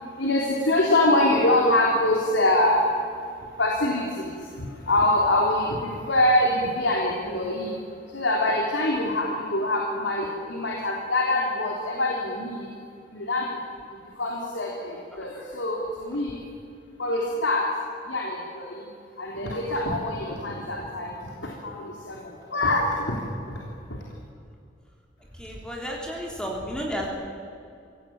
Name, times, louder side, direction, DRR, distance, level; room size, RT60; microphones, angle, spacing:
voice 1, 0.2-2.8 3.6-7.8 8.1-12.7 13.1-13.5 14.2-16.4 17.0-17.7 18.1-18.9 19.2-23.2 23.5-23.6 23.9-24.0, left 1 dB, 85° left, -1 dB, 3.5 m, -24 dB
voice 2, 25.4-27.1, equal, 5° left, -2 dB, 3.4 m, -32 dB
24.5 x 18.0 x 8.9 m, 2.4 s
head